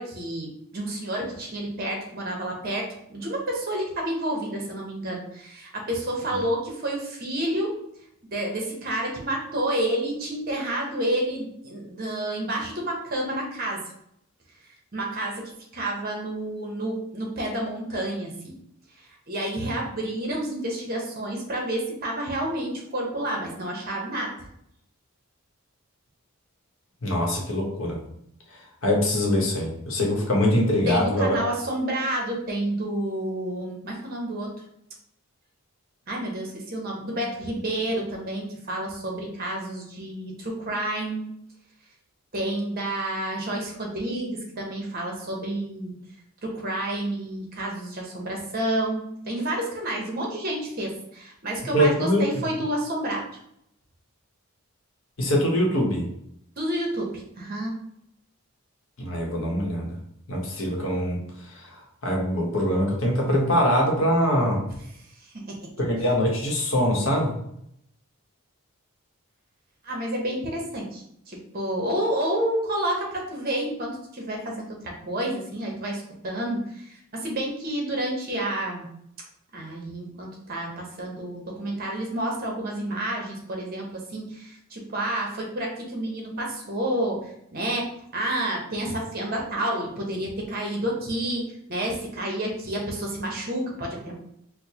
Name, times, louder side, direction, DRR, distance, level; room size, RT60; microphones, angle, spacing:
voice 1, 0.0-7.7 8.3-13.8 14.9-18.5 19.0-24.3 30.9-34.5 36.1-41.2 42.3-46.0 46.4-53.3 56.6-57.8 65.2-65.7 69.8-78.9 79.5-94.1, right 1 dB, 45° right, 0 dB, 0.8 m, -30 dB
voice 2, 27.0-28.0 28.5-31.4 51.7-52.4 55.2-56.1 59.0-59.9 60.3-64.6 65.8-67.4, equal, 60° left, -1 dB, 0.8 m, -23 dB
4.5 x 2.1 x 2.8 m, 0.74 s
head